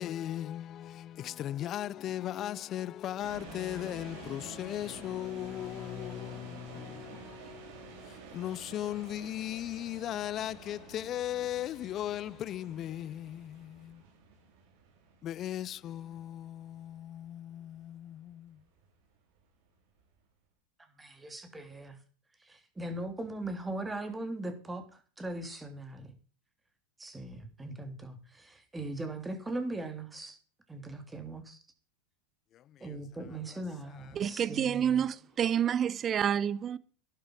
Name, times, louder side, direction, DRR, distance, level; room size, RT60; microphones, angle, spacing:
voice 1, 0.0-14.0 15.2-18.6 32.5-33.0 34.0-34.2, left 12 dB, 40° left, 0.5 m, -38 dB
sound 1, 3.2-20.2, right 6 dB, 60° right, 4.1 m, -51 dB
voice 2, 20.9-22.0 22.4-24.8 25.2-26.1 27.0-30.4 30.7-31.6 32.8-35.0, right 2 dB, 10° right, 3.3 m, -39 dB
voice 3, 34.2-36.8, right 9 dB, 30° right, 0.8 m, -28 dB
14.0 x 11.5 x 4.7 m
hypercardioid pair, 95°, 0 cm